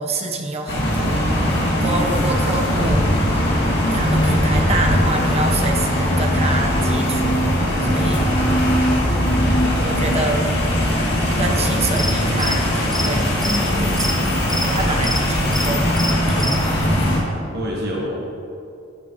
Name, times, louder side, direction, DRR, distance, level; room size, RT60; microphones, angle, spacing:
voice 1, 0.0-1.3 1.8-3.2 3.9-7.4 7.8-8.3 9.8-10.5 11.4-14.3 14.6-15.8 16.3-16.9, right 2 dB, 35° right, 2 dB, 0.9 m, -26 dB
sound 1, 0.7-17.2, equal, 60° left, 2.0 m, -19 dB
sound 2, 11.8-16.7, left 1 dB, ahead, 0.5 m, -30 dB
voice 2, 17.5-18.2, equal, 55° right, -3 dB, 1.2 m, -28 dB
15.0 x 6.7 x 3.0 m, 2.5 s
head